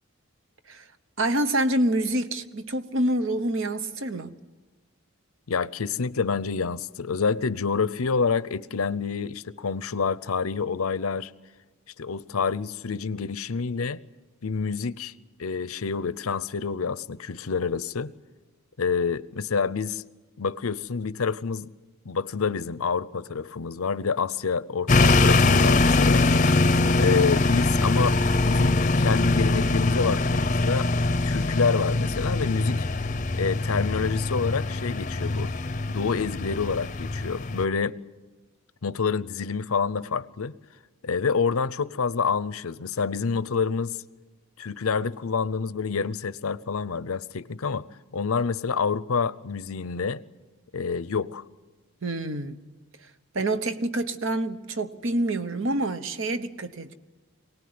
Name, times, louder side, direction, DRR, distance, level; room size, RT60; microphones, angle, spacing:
voice 1, 1.2-4.3 52.0-52.6 53.3-56.9, right 1 dB, 60° right, 1.1 m, -27 dB
voice 2, 5.5-11.3 12.0-14.0 14.4-15.1 15.4-18.1 18.8-20.0 20.4-21.7 22.0-26.3 27.0-28.2 28.4-30.9 31.2-32.9 33.3-35.5 35.9-38.0 38.8-40.6 41.0-44.0 44.6-47.9 48.1-50.2 50.7-51.4, left 5 dB, 80° left, 0.7 m, -27 dB
sound 1, 24.9-37.6, left 2 dB, 35° left, 0.7 m, -22 dB
24.0 x 18.5 x 9.6 m
head